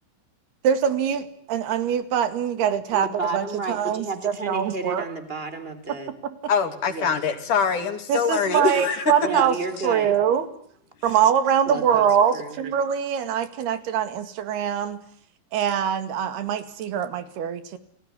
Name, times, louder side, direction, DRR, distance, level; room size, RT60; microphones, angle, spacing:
voice 1, 0.6-5.0 6.2-6.4 8.1-9.6 9.8-10.5 11.0-15.0 15.5-17.8, right 8 dB, 65° right, 12 dB, 4.0 m, -23 dB
voice 2, 2.9-6.1 6.9-7.1 9.2-10.1 11.7-12.1 12.3-12.6, right 3 dB, 15° right, 11 dB, 3.5 m, -31 dB
voice 3, 6.5-9.1, left 6 dB, 50° left, 8 dB, 3.9 m, -24 dB
29.0 x 20.5 x 9.8 m, 0.64 s
omnidirectional pair, 5.1 m